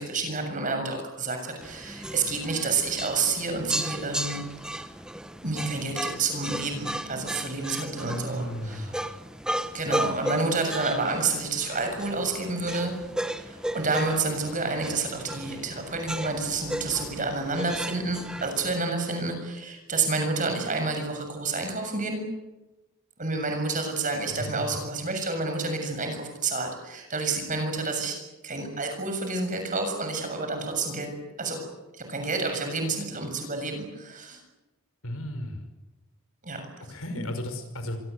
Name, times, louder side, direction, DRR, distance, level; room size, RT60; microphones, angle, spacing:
voice 1, 0.0-4.4 5.4-8.9 9.7-13.0 13.4-22.2 23.2-28.2 28.4-31.1 31.4-31.6 32.0-34.4 36.4-36.6, right 3 dB, 40° right, 5 dB, 7.0 m, -29 dB
sound 1, 1.6-18.8, right 1 dB, 5° right, 1.1 m, -35 dB
voice 2, 8.0-9.0 24.3-24.7 35.0-35.6 36.9-38.0, equal, 90° left, 7 dB, 5.5 m, -34 dB
26.0 x 23.5 x 8.2 m, 1.0 s
head